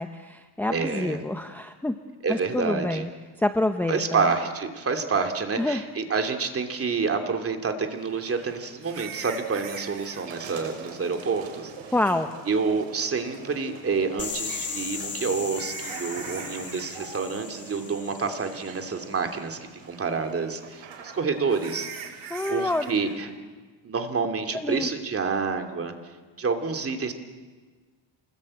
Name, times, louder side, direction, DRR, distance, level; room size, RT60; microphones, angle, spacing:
voice 1, 0.0-1.9 2.3-3.1 3.4-4.2 5.6-5.8 11.9-12.3 22.3-22.9 24.5-24.9, left 1 dB, 5° left, 7 dB, 0.9 m, -27 dB
voice 2, 0.7-1.2 2.2-3.0 3.9-11.7 12.5-19.6 19.9-21.9 22.5-23.5 23.8-25.9 26.4-27.1, right 5 dB, 30° right, 5 dB, 2.7 m, -28 dB
sound 1, 6.9-7.0 8.8-10.3 12.0-12.2 14.7-16.9 17.1-17.5 17.9-18.0 18.6-18.7 21.5-23.0, right 7 dB, 45° right, 2.9 m, -41 dB
sound 2, 7.9-23.2, right 5 dB, 65° right, 6.6 m, -45 dB
sound 3, 14.2-19.0, left 5 dB, 30° left, 2.9 m, -37 dB
27.0 x 21.0 x 8.8 m, 1.4 s
cardioid pair, 145°, 49 cm